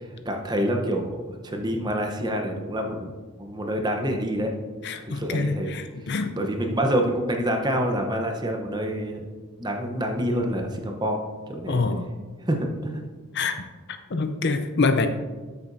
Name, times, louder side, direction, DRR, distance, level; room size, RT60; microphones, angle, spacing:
voice 1, 0.2-3.1 3.4-4.5 5.1-5.7 6.3-9.2 9.6-11.2 11.5-11.8 12.5-13.0, equal, 20° right, 3 dB, 0.8 m, -27 dB
voice 2, 4.8-6.4 11.7-12.1 13.3-13.6 14.1-15.1, left 3 dB, 50° left, 8 dB, 0.5 m, -25 dB
12.5 x 6.8 x 2.6 m, 1.4 s
head